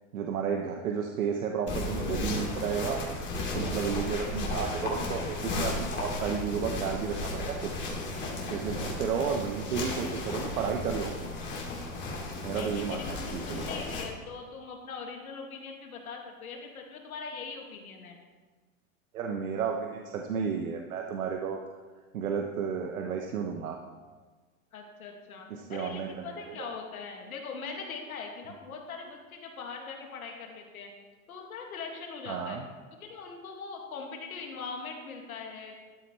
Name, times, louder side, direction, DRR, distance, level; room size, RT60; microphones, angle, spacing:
voice 1, 0.1-3.0 3.5-8.0 8.5-11.3 12.4-13.6 19.1-21.6 22.1-23.8 25.5-26.7 32.3-32.7, right 7 dB, 80° right, 3 dB, 1.1 m, -32 dB
sound 1, 1.7-14.0, left 2 dB, 25° left, 2.8 m, -34 dB
voice 2, 12.5-18.2 24.7-30.9 31.3-32.6 33.0-35.8, left 5 dB, 85° left, 2 dB, 2.1 m, -41 dB
13.0 x 9.5 x 3.2 m, 1.4 s
hypercardioid pair, 110°, 42 cm